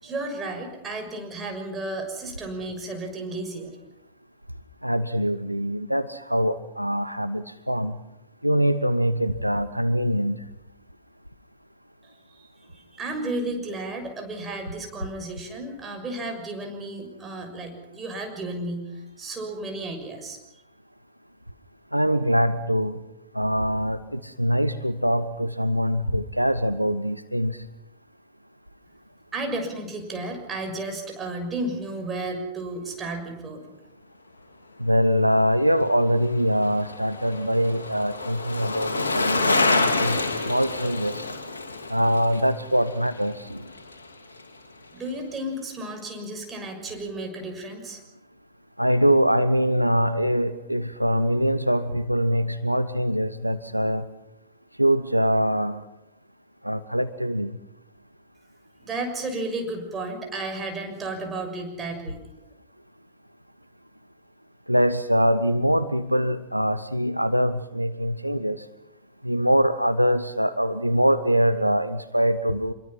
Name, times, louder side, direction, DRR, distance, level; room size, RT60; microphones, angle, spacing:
voice 1, 0.0-3.7 12.0-20.4 29.3-33.6 44.9-48.0 58.8-62.2, right 2 dB, 20° right, 3 dB, 6.5 m, -33 dB
voice 2, 4.8-8.0 8.4-10.4 21.9-23.0 23.3-27.6 34.8-41.3 41.9-43.7 48.8-54.1 54.8-55.8 56.6-57.6 64.7-68.6 69.2-72.7, equal, 90° right, 13 dB, 0.8 m, -23 dB
Bicycle, 35.7-44.1 44.4-44.5, left 3 dB, 75° left, 2.5 m, -28 dB
25.5 x 23.0 x 5.7 m, 0.86 s
figure-of-eight pair, 90°, 0 cm